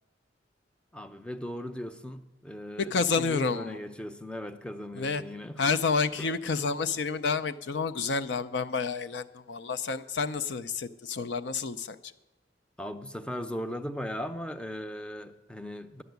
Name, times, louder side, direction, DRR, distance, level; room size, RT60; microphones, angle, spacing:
voice 1, 0.9-5.8 6.2-6.3 12.8-16.0, left 1 dB, 5° left, 9 dB, 0.6 m, -38 dB
voice 2, 2.8-3.8 4.9-5.2 5.6-12.0, left 4 dB, 70° left, 11 dB, 0.6 m, -29 dB
11.0 x 6.9 x 9.3 m, 1.1 s
head